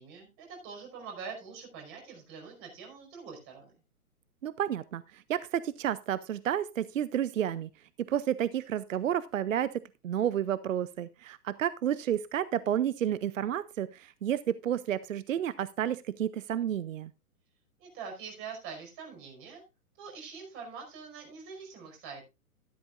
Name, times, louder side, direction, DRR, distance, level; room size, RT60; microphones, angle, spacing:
voice 1, 0.0-3.7 17.8-19.6 20.0-22.3, right 5 dB, 30° right, 2 dB, 5.3 m, -44 dB
voice 2, 4.4-7.7 8.0-17.1, right 10 dB, 60° right, 17 dB, 0.7 m, -31 dB
13.5 x 11.5 x 2.5 m, 0.25 s
figure-of-eight pair, 125°, 45 cm